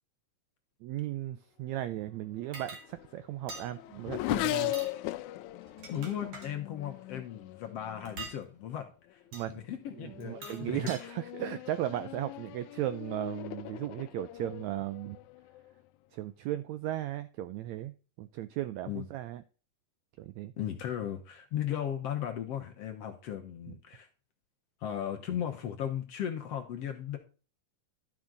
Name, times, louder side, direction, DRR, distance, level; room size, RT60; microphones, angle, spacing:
voice 1, 0.8-4.7 9.3-9.6 9.9-15.2 16.1-19.4 20.2-20.5, right 13 dB, 85° right, 13 dB, 1.6 m, -36 dB
Race car auto racing / Accelerating revving vroom, 2.4-8.3 9.1-9.5 9.9-15.8, left 17 dB, 80° left, 1.8 m, -39 dB
sound 1, 2.5-2.8 3.5-3.7 4.6-4.9 5.6-6.5 8.1-8.4 9.3-9.5 10.2-11.0, right 3 dB, 45° right, 2.6 m, -44 dB
voice 2, 5.9-8.8 9.1-9.2 9.5-11.1 18.8-19.1 20.6-24.1 24.8-27.2, left 10 dB, 65° left, 4 dB, 1.7 m, -36 dB
11.5 x 6.2 x 3.9 m, 0.36 s
omnidirectional pair, 3.8 m